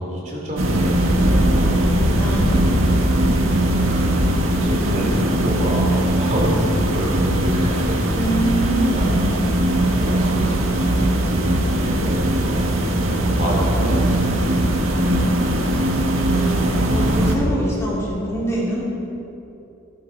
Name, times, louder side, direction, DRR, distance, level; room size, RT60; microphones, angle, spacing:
voice 1, 0.0-2.2 3.9-8.2 8.9-14.6, right 1 dB, 35° right, -3 dB, 3.0 m, -27 dB
sound 1, 0.6-17.3, right 1 dB, 90° right, 1.8 m, -19 dB
voice 2, 2.1-3.2 8.2-9.5 14.9-15.9 16.9-18.8, right 1 dB, 15° left, -6 dB, 3.5 m, -25 dB
16.5 x 14.5 x 4.7 m, 2.8 s
head